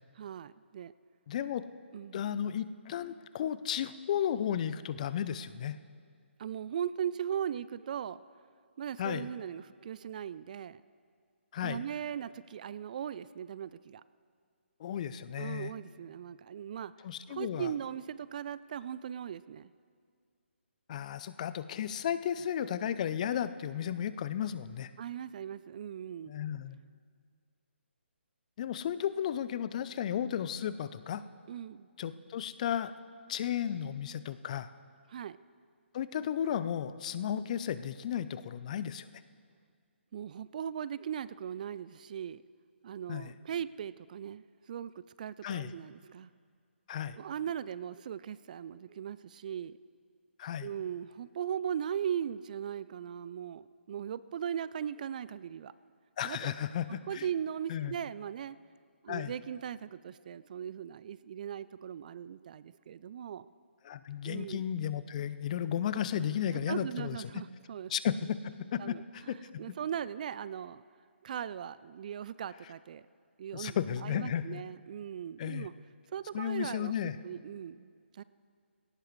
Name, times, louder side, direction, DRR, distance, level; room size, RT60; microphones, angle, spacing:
voice 1, 0.2-0.9 1.9-2.2 6.4-8.2 8.8-10.8 11.6-14.0 15.4-16.9 17.3-19.7 25.0-26.3 31.5-31.9 35.1-35.4 40.1-42.4 42.8-46.3 47.2-49.8 50.6-55.7 56.2-56.5 57.1-58.6 59.0-63.5 64.2-64.6 66.5-67.9 68.8-70.8 71.2-73.0 73.4-73.8 74.0-75.7 76.1-78.2, right 9 dB, 40° right, 17 dB, 0.3 m, -39 dB
voice 2, 1.3-1.6 2.1-5.8 9.0-9.3 11.5-11.8 14.8-15.7 17.0-17.7 20.9-24.9 26.3-26.8 28.6-31.2 32.0-32.9 33.3-34.7 35.9-39.1 43.1-43.3 45.4-45.7 46.9-47.2 50.4-50.7 56.2-57.2 57.7-57.9 59.1-59.3 63.8-67.2 67.9-69.4 73.5-74.7 75.4-75.7 76.3-77.2, left 9 dB, 35° left, 14 dB, 0.5 m, -34 dB
19.5 x 17.5 x 3.2 m, 2.1 s
figure-of-eight pair, 145°, 7 cm